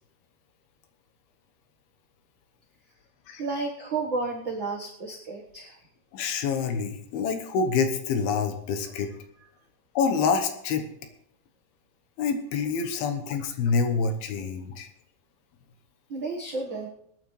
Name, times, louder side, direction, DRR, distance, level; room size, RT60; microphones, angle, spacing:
voice 1, 3.4-5.9 16.1-16.9, right 3 dB, 85° right, -2 dB, 1.0 m, -32 dB
voice 2, 6.1-9.1 10.0-10.9 12.2-14.9, left 5 dB, 75° left, 6 dB, 3.0 m, -27 dB
25.5 x 9.3 x 3.2 m, 0.72 s
omnidirectional pair, 4.5 m